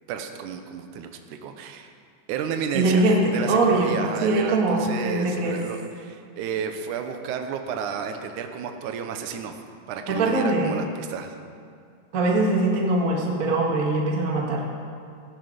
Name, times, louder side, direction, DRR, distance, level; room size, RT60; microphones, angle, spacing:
voice 1, 0.1-1.9 2.3-9.6 9.9-11.4, right 7 dB, 75° right, 6 dB, 2.3 m, -32 dB
voice 2, 2.7-5.6 10.1-10.8 12.1-14.6, right 2 dB, 35° right, -1 dB, 1.5 m, -22 dB
17.5 x 10.5 x 5.1 m, 2.3 s
omnidirectional pair, 3.8 m